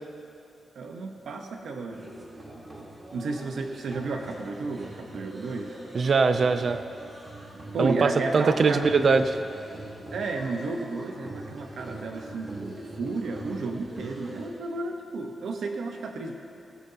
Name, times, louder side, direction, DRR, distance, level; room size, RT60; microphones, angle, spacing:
voice 1, 0.7-2.1 3.1-5.8 7.7-8.9 10.1-16.3, right 3 dB, 70° right, 3 dB, 1.1 m, -32 dB
sound 1, 1.9-14.5, right 2 dB, 25° right, 1.7 m, -43 dB
voice 2, 5.9-6.8 7.8-9.2, right 4 dB, 40° right, 10 dB, 0.5 m, -21 dB
15.5 x 14.5 x 2.9 m, 2.7 s
wide cardioid pair, 180°, 0 cm